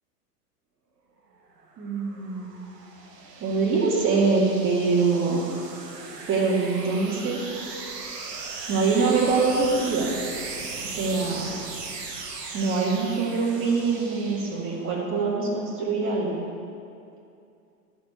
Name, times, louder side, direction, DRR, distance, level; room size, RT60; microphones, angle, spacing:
sound 1, 1.5-15.0, right 4 dB, 80° right, 1.3 m, -38 dB
voice 1, 1.8-2.5 3.4-5.5 6.3-7.8 8.7-10.1 10.8-11.5 12.5-16.4, right 4 dB, 25° right, -5 dB, 2.0 m, -24 dB
12.0 x 4.6 x 5.5 m, 2.6 s
hypercardioid pair, 100°, 48 cm